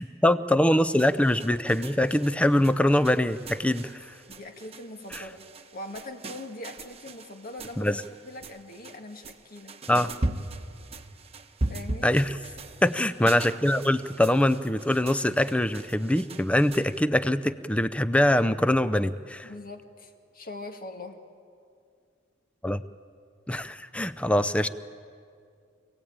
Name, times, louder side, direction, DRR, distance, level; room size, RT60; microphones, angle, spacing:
voice 1, 0.0-4.1 7.8-8.0 9.9-10.1 12.0-12.3 12.8-19.5 22.6-22.8 23.5-24.7, left 1 dB, 5° left, 13 dB, 0.6 m, -23 dB
sound 1, 0.7-17.0, right 2 dB, 30° right, 1.0 m, -39 dB
voice 2, 4.3-7.9 8.2-10.0 11.6-12.1 19.4-21.2, left 2 dB, 50° left, 5 dB, 1.8 m, -42 dB
26.0 x 17.5 x 8.9 m, 2.3 s
head